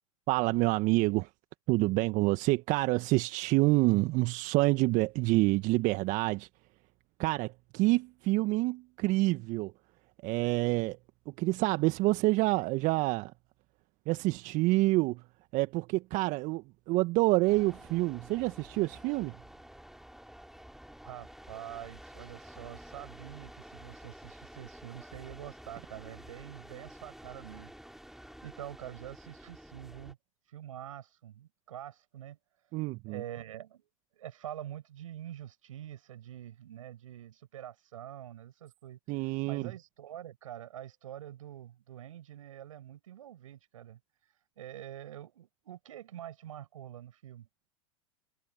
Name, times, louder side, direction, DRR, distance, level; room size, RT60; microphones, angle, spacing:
voice 1, 0.3-1.3 1.7-6.5 7.2-9.7 10.2-11.0 11.3-13.3 14.1-15.2 15.5-19.4 32.7-33.2 39.1-39.7, right 21 dB, 45° right, 1.5 m, -27 dB
sound 1, 17.5-30.1, equal, ahead, 3.2 m, -51 dB
voice 2, 21.0-27.7 28.4-30.2 30.5-32.4 33.1-33.9 34.2-44.0 44.6-47.5, right 11 dB, 75° right, 7.1 m, -46 dB
hypercardioid pair, 90°, 17 cm